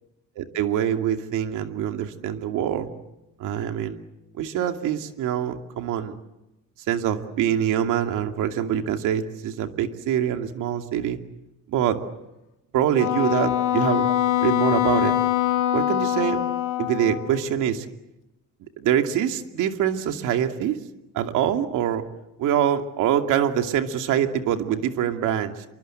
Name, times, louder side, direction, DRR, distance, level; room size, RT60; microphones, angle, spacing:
voice 1, 0.4-2.9 3.4-4.0 4.4-6.2 6.9-11.2 11.7-12.0 12.7-14.1 14.4-15.1 15.7-16.4 16.8-17.9 18.8-20.8 21.1-22.0 22.4-25.6, right 10 dB, 65° right, 5 dB, 2.6 m, -24 dB
Wind instrument woodwind instrument, 13.0-17.4, left 11 dB, 65° left, 2.5 m, -23 dB
28.0 x 24.5 x 7.9 m, 0.94 s
cardioid pair, 175°, 33 cm